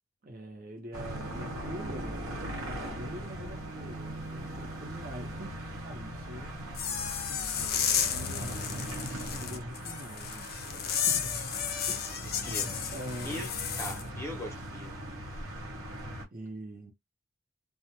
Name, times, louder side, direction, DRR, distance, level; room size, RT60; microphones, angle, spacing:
voice 1, 0.2-6.7 7.3-11.5 11.9-12.6 12.9-13.5 16.3-16.9, right 1 dB, 40° right, 0.8 m, -45 dB
sound 1, 0.9-16.2, right 1 dB, 70° right, 1.0 m, -40 dB
sound 2, 6.7-14.0, left 8 dB, 45° left, 0.5 m, -33 dB
voice 2, 12.4-12.9 13.2-13.5 13.8-14.9, equal, 10° left, 0.8 m, -40 dB
2.4 x 2.1 x 2.9 m
head